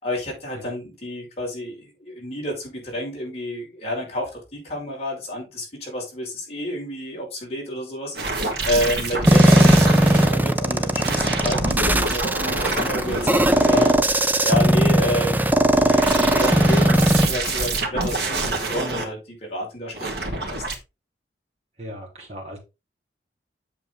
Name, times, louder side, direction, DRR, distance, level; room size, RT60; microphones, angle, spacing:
voice 1, 0.0-15.4 15.7-20.6, left 1 dB, 35° left, 5.4 m, -30 dB
sound 1, 8.1-10.3 10.9-14.4 15.6-19.0 19.9-20.7, right 2 dB, 65° right, 2.1 m, -27 dB
sound 2, 9.3-17.3, right 1 dB, 10° right, 0.6 m, -18 dB
voice 2, 21.8-22.6, equal, 35° right, 3.6 m, -38 dB
8.2 x 6.7 x 3.8 m
head